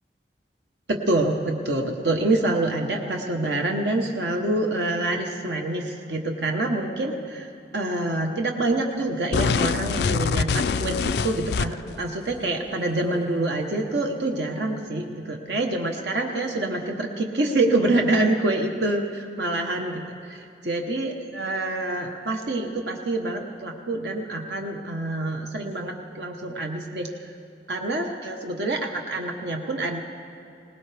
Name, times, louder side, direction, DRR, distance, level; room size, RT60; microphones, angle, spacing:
voice 1, 0.9-27.3 27.7-30.0, right 2 dB, 75° right, 2 dB, 1.1 m, -26 dB
sound 1, 9.3-12.0, left 5 dB, 65° left, 0.4 m, -24 dB
22.0 x 19.0 x 3.4 m, 2.7 s
head